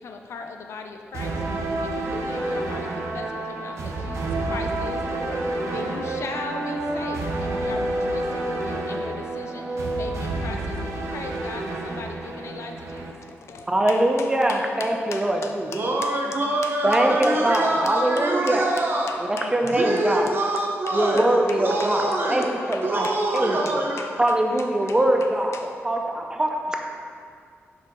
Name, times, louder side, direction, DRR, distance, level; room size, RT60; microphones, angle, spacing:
voice 1, 0.0-16.1 16.6-18.6 19.1-20.0 20.9-21.9 22.5-25.0 25.5-25.7, left 4 dB, 75° left, 4 dB, 0.4 m, -39 dB
sound 1, 1.1-13.1, right 2 dB, 85° right, 0.7 m, -29 dB
voice 2, 13.7-15.7 16.8-18.6 19.2-20.3 20.9-23.1 23.3-23.6 24.2-25.6 25.8-26.8, right 1 dB, 15° right, 2 dB, 0.6 m, -22 dB
voice 3, 15.7-19.1 19.7-22.4 22.8-24.0, right 1 dB, 50° right, -1 dB, 0.9 m, -25 dB
5.6 x 4.6 x 3.8 m, 2.2 s
wide cardioid pair, 120°, 5 cm